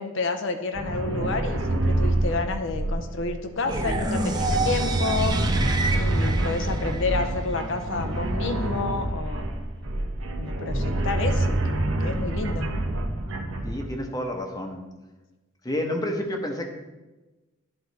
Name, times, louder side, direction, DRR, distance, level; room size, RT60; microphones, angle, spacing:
voice 1, 0.0-5.3 5.9-9.5 10.4-12.7, left 3 dB, 65° left, 6 dB, 0.7 m, -30 dB
sound 1, 0.7-13.8, right 1 dB, 90° right, 0.9 m, -27 dB
sound 2, 3.7-7.6, right 2 dB, 20° right, 0.6 m, -29 dB
voice 2, 13.6-14.8 15.6-16.7, left 1 dB, 20° left, 3 dB, 0.9 m, -29 dB
11.0 x 3.9 x 4.1 m, 1.1 s
head